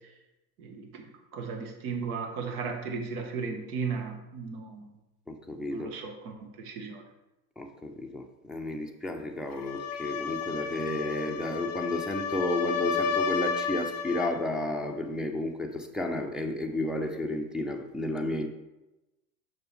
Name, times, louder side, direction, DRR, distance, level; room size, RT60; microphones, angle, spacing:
voice 1, 0.6-1.1 1.3-4.9 5.7-7.0, right 5 dB, 65° right, 3 dB, 1.6 m, -35 dB
voice 2, 5.3-5.9 7.6-18.5, left 1 dB, ahead, 1 dB, 0.5 m, -32 dB
sound 1, 9.5-14.4, left 5 dB, 30° left, 0.7 m, -32 dB
6.7 x 6.1 x 3.5 m, 0.99 s
hypercardioid pair, 95°, 49 cm